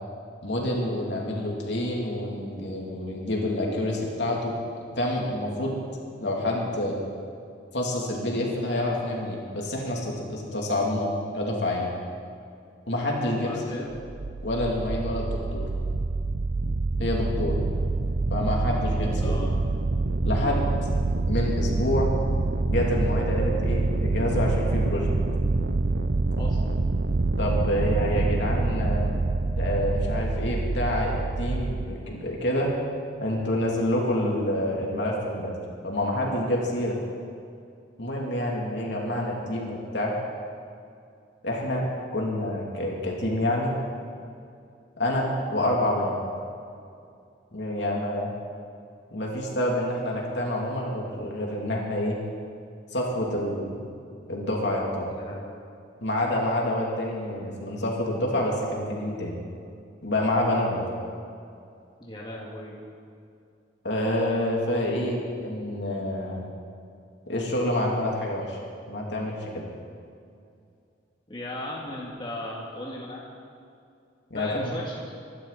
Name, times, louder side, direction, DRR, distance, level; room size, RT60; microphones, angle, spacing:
voice 1, 0.4-4.5 5.0-5.8 6.2-7.0 7.7-11.1 11.3-11.9 12.9-13.9 14.4-15.7 17.0-17.6 18.3-19.4 20.2-20.6 21.3-22.1 22.7-25.1 27.4-29.0 29.6-32.7 33.2-35.5 35.8-37.0 38.0-40.1 41.4-41.8 42.1-43.7 45.0-46.2 47.5-48.3 49.1-52.2 52.9-53.8 54.3-55.1 56.0-59.4 60.0-60.9 63.8-66.4 67.3-68.6 68.9-69.7 74.3-74.7, left 1 dB, 70° left, -2 dB, 3.0 m, -27 dB
voice 2, 13.3-13.9 19.2-19.5 26.4-26.8 55.1-55.6 62.0-62.8 71.3-73.3 74.3-75.2, left 1 dB, 25° left, -4 dB, 2.1 m, -37 dB
sound 1, 13.9-31.9, right 3 dB, 65° right, 0.6 m, -26 dB
24.5 x 12.0 x 4.2 m, 2.5 s
head